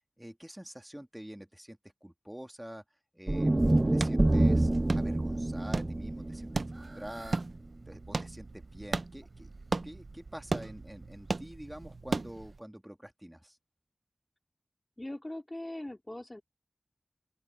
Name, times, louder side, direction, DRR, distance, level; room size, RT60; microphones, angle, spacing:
voice 1, 0.2-2.8 3.1-3.6 3.9-7.4 7.9-9.5 9.8-13.6, equal, 10° right, 2.7 m, -47 dB
sound 1, 3.3-7.5, right 2 dB, 35° right, 0.4 m, -27 dB
sound 2, 3.6-12.6, right 3 dB, 70° right, 0.8 m, -37 dB
Fowl / Bird, 6.2-11.5, right 2 dB, 50° right, 4.5 m, -57 dB
voice 2, 15.0-16.4, left 1 dB, 25° left, 2.9 m, -40 dB
open air
wide cardioid pair, 55°, 0 cm